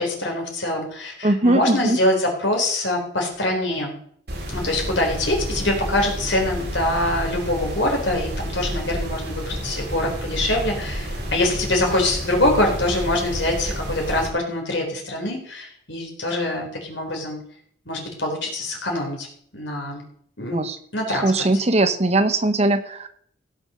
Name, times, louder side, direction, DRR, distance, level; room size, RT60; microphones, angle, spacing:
voice 1, 0.0-4.0 4.5-17.4 17.9-19.3 19.5-20.0 20.4-20.6 20.9-21.5, left 1 dB, 75° left, 1 dB, 4.1 m, -24 dB
voice 2, 1.2-2.0 20.5-20.8 21.1-23.1, right 2 dB, 35° right, 10 dB, 0.9 m, -20 dB
sound 1, 4.3-14.3, equal, 60° right, 3.9 m, -30 dB
16.5 x 6.3 x 6.4 m, 0.63 s
head